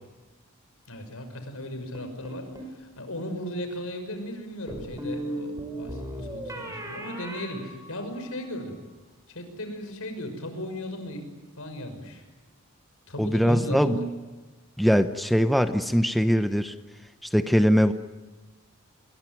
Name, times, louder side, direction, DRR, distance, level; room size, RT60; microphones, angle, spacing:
voice 1, 0.9-8.8 9.3-11.3 11.6-12.2 13.1-14.1, equal, 70° left, 7 dB, 6.1 m, -36 dB
sound 1, 1.9-2.8 4.7-8.4, right 1 dB, 15° right, 5.5 m, -37 dB
voice 2, 13.2-14.0 14.8-16.7 17.3-17.9, equal, ahead, 9 dB, 0.8 m, -21 dB
28.0 x 22.0 x 9.4 m, 1.2 s
head